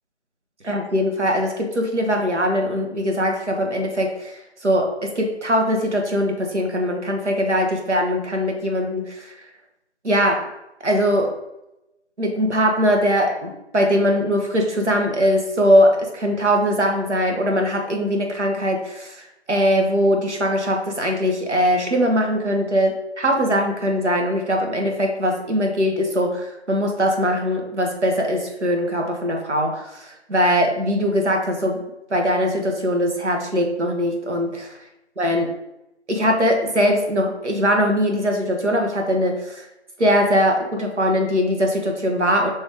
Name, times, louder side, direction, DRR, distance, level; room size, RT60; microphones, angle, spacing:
voice 1, 0.6-9.3 10.0-10.4 10.8-11.3 12.2-31.8 32.1-34.8 35.2-35.5 36.1-39.7 40.0-42.5, equal, 90° right, 2 dB, 1.2 m, -21 dB
5.0 x 3.0 x 3.4 m, 0.90 s
figure-of-eight pair, 170°, 34 cm